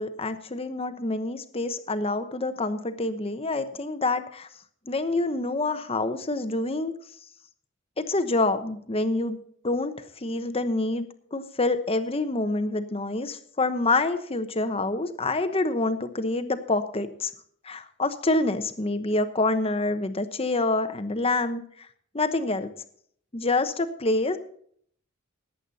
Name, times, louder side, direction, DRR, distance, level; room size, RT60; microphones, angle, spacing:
voice 1, 0.0-4.5 4.9-6.9 8.0-9.4 9.6-17.3 17.6-21.9 22.1-22.7 23.3-24.4, left 2 dB, 30° left, 10 dB, 1.0 m, -27 dB
18.0 x 8.2 x 4.1 m, 0.63 s
head